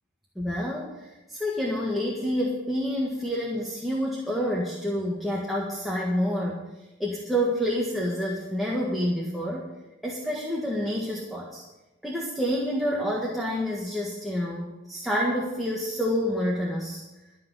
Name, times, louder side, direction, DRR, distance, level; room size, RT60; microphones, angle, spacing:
voice 1, 0.3-0.9 1.3-6.6 7.0-9.7 10.0-11.6 12.0-17.0, equal, ahead, -4 dB, 1.6 m, -28 dB
13.0 x 6.1 x 9.6 m, 1.0 s
head